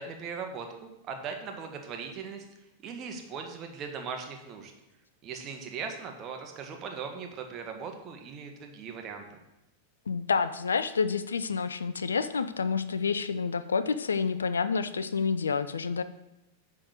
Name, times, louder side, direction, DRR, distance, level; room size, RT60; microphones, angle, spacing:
voice 1, 0.0-2.4 2.8-4.7 5.2-9.2, right 5 dB, 30° right, 4 dB, 1.5 m, -39 dB
voice 2, 10.1-16.0, left 5 dB, 70° left, 12 dB, 0.5 m, -29 dB
10.0 x 3.8 x 6.4 m, 0.91 s
figure-of-eight pair, 90°, 0 cm